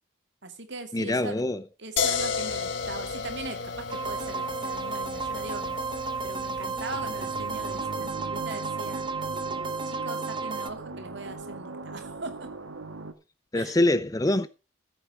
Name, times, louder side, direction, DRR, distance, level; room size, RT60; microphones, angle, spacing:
voice 1, 0.4-1.4 1.8-12.5 13.5-13.8, right 2 dB, 55° right, 2.5 m, -41 dB
voice 2, 0.9-1.6 13.5-14.5, left 1 dB, 15° left, 0.5 m, -24 dB
sound 1, 2.0-7.8, left 5 dB, 65° left, 1.8 m, -33 dB
sound 2, 3.9-10.7, right 4 dB, 25° right, 0.9 m, -33 dB
sound 3, 6.9-13.1, right 3 dB, 85° right, 1.7 m, -40 dB
14.5 x 8.3 x 4.9 m
head